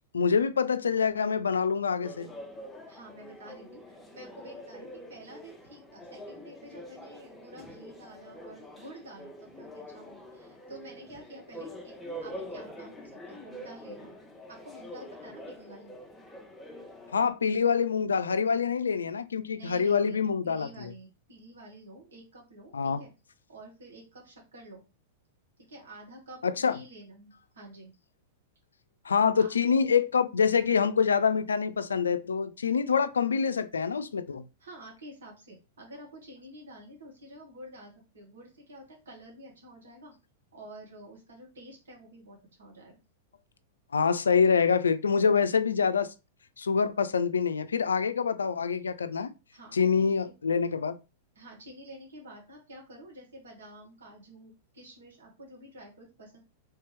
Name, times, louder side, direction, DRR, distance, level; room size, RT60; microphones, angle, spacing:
voice 1, 0.1-2.3 17.1-20.7 22.7-23.0 26.4-26.8 29.1-34.4 43.9-46.1 46.6-49.3 49.7-51.0, left 6 dB, 80° left, 0.3 m, -26 dB
sound 1, 2.0-17.3, equal, 5° left, 0.8 m, -45 dB
voice 2, 2.9-12.0 12.2-14.1 14.5-15.9 19.5-23.1 23.5-24.9 25.6-27.9 29.4-29.6 34.6-40.1 40.5-43.0 49.5-50.4 51.4-56.4, right 1 dB, 75° right, 1.7 m, -49 dB
3.4 x 2.9 x 3.3 m
hypercardioid pair, 100°, 0 cm